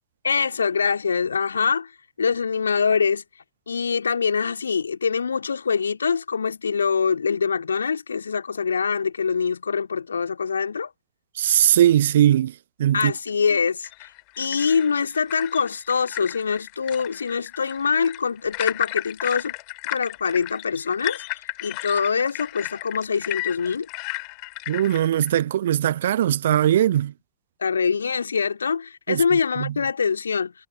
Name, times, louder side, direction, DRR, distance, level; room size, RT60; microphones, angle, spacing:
voice 1, 0.2-1.9 2.2-3.2 3.7-10.9 12.9-13.9 14.4-19.5 19.9-21.2 21.6-23.9 27.6-30.5, left 6 dB, 75° left, 2.2 m, -24 dB
voice 2, 11.4-12.5 12.8-13.1 24.7-27.1 29.1-29.2 29.6-29.7, right 11 dB, 60° right, 0.5 m, -19 dB
sound 1, 13.8-25.4, left 36 dB, 45° left, 3.7 m, -34 dB
figure-of-eight pair, 90°, 0 cm